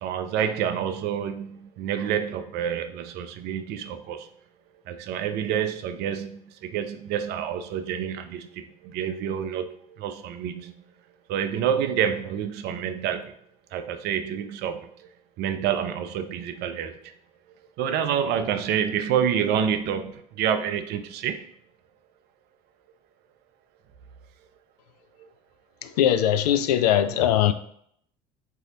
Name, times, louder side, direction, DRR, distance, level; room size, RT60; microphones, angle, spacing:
voice 1, 0.0-4.3 4.9-10.8 11.3-13.3 13.7-15.1 15.4-17.1 17.8-21.4, right 8 dB, 55° right, 9 dB, 0.5 m, -28 dB
voice 2, 25.8-27.5, left 10 dB, 75° left, 10 dB, 0.4 m, -21 dB
4.0 x 2.7 x 3.9 m, 0.67 s
figure-of-eight pair, 60°, 21 cm